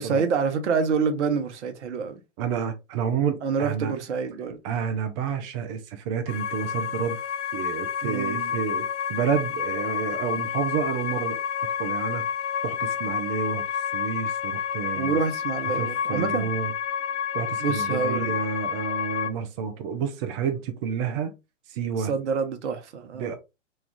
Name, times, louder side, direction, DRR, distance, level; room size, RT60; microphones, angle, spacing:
voice 1, 0.0-2.2 3.4-4.6 8.0-8.5 14.9-16.5 17.6-18.4 22.0-23.4, right 5 dB, 65° right, 0.9 m, -27 dB
voice 2, 2.4-3.9 4.6-7.2 7.5-11.4 11.8-12.2 12.6-13.6 13.9-15.2 15.6-16.7 17.3-21.3 21.7-22.1 23.1-23.4, right 7 dB, 25° right, 0.4 m, -29 dB
sound 1, 6.3-19.3, left 7 dB, 70° left, 0.5 m, -29 dB
3.1 x 2.4 x 3.4 m
figure-of-eight pair, 110°, 38 cm